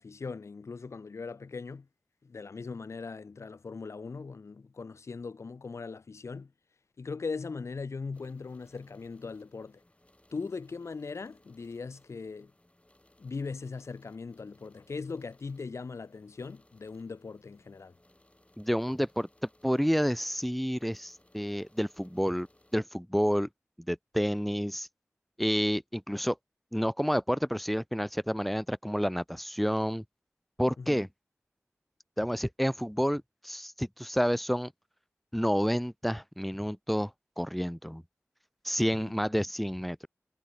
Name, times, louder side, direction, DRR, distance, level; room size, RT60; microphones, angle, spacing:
voice 1, 0.0-1.9 2.2-6.5 7.0-9.8 10.3-12.5 13.2-17.9 30.8-31.0 38.9-39.2, left 4 dB, 70° left, 0.4 m, -40 dB
sound 1, 8.1-22.7, left 1 dB, 25° left, 7.9 m, -65 dB
voice 2, 18.6-19.3 19.6-22.5 22.7-23.5 23.9-24.9 25.4-26.4 26.7-30.0 30.6-31.1 32.2-34.7 35.3-37.1 37.4-38.0 38.6-40.0, equal, ahead, 0.7 m, -29 dB
wide cardioid pair, 45°, 5 cm